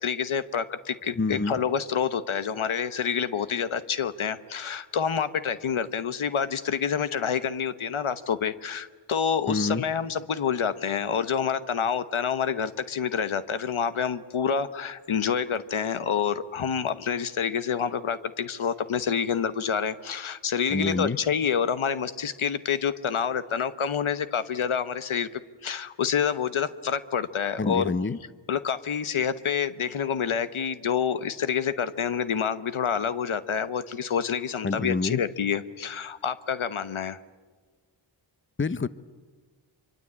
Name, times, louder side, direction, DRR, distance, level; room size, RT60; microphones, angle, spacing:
voice 1, 0.0-25.3 25.6-27.9 28.5-37.2, left 7 dB, 90° left, 1.1 m, -28 dB
voice 2, 1.2-1.6 9.5-9.8 20.7-21.2 27.6-28.2 34.6-35.2 38.6-38.9, left 3 dB, 25° left, 0.8 m, -27 dB
25.5 x 24.5 x 8.7 m
wide cardioid pair, 60°, 47 cm